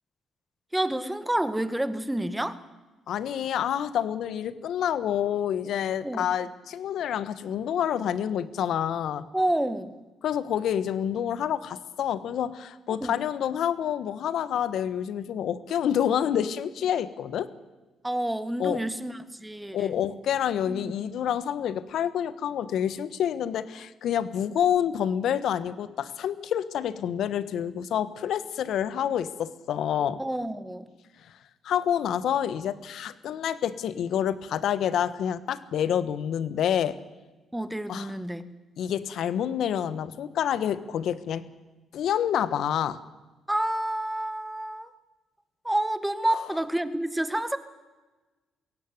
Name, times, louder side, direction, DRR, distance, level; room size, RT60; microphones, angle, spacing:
voice 1, 0.7-2.6 6.0-6.3 9.3-9.9 13.0-13.2 18.0-20.0 20.7-20.9 30.2-30.9 37.5-38.4 43.5-44.9 45.6-47.6, right 1 dB, 5° right, 12 dB, 1.7 m, -29 dB
voice 2, 3.1-9.3 10.2-17.5 18.6-18.8 19.7-30.2 31.6-37.0 37.9-38.1 38.8-41.5 41.9-43.0, left 9 dB, 70° left, 15 dB, 1.4 m, -28 dB
22.0 x 17.0 x 9.6 m, 1.2 s
cardioid pair, 95°, 0 cm